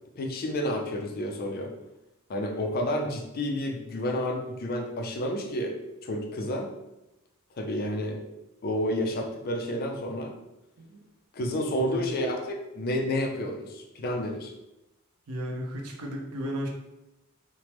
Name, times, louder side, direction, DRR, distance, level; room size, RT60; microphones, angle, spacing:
voice 1, 0.2-1.7 2.3-6.7 7.6-8.2 8.6-10.3 11.3-14.5, left 1 dB, 45° left, 3 dB, 0.4 m, -30 dB
voice 2, 11.4-12.1 15.3-16.7, equal, 85° right, 1 dB, 0.6 m, -35 dB
3.3 x 2.0 x 2.9 m, 0.93 s
head